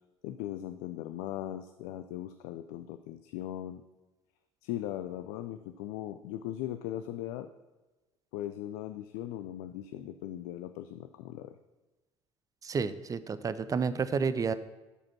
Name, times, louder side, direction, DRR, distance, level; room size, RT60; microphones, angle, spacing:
voice 1, 0.2-3.8 4.6-7.5 8.3-11.5, left 12 dB, 55° left, 9 dB, 0.5 m, -39 dB
voice 2, 12.6-14.5, right 5 dB, 25° right, 14 dB, 0.6 m, -30 dB
11.5 x 5.0 x 5.9 m, 1.1 s
figure-of-eight pair, 60°, 15 cm